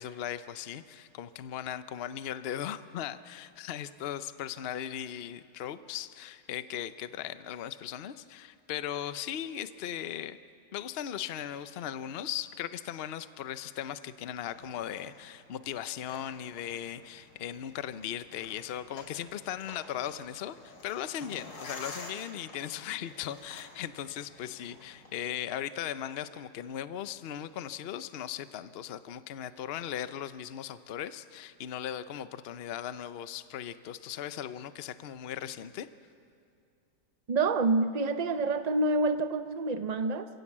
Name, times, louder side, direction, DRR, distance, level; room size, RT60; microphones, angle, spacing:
voice 1, 0.0-10.4 10.7-35.9, left 10 dB, 60° left, 12 dB, 0.6 m, -38 dB
sound 1, 14.3-25.1, left 2 dB, 80° left, 3.3 m, -50 dB
voice 2, 37.3-40.3, right 3 dB, 75° right, 9 dB, 0.3 m, -27 dB
28.0 x 16.0 x 7.3 m, 2.5 s
omnidirectional pair, 1.9 m